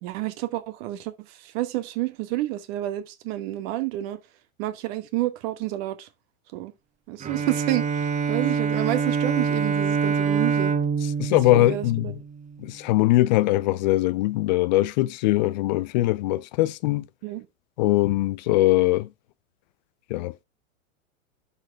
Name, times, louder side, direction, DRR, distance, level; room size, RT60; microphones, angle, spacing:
voice 1, 0.0-4.2 4.6-6.1 6.5-6.7 7.1-10.7 11.5-12.1 17.2-17.5, right 16 dB, 45° right, 1.1 m, -29 dB
Bowed string instrument, 7.2-12.6, right 6 dB, 20° right, 1.0 m, -25 dB
voice 2, 11.2-12.1 12.6-17.1 17.8-19.1 20.1-20.3, left 17 dB, 35° left, 0.4 m, -21 dB
12.0 x 4.3 x 3.4 m
hypercardioid pair, 100°, 42 cm